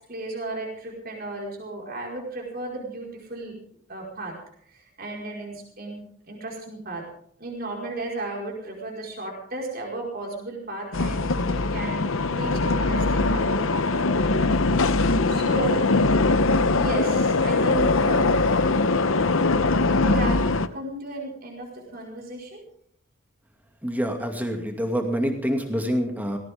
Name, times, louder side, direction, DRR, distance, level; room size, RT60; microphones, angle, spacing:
voice 1, 0.1-3.6 3.9-4.4 4.7-7.0 7.4-14.3 15.0-15.9 16.7-18.8 19.9-20.4 20.7-22.6 24.3-24.4, right 2 dB, 45° right, -1 dB, 5.1 m, -34 dB
sound 1, 10.9-20.7, left 3 dB, 65° left, 0.9 m, -21 dB
voice 2, 23.8-26.4, equal, 10° right, 3 dB, 2.4 m, -26 dB
18.5 x 17.5 x 3.7 m, 0.64 s
head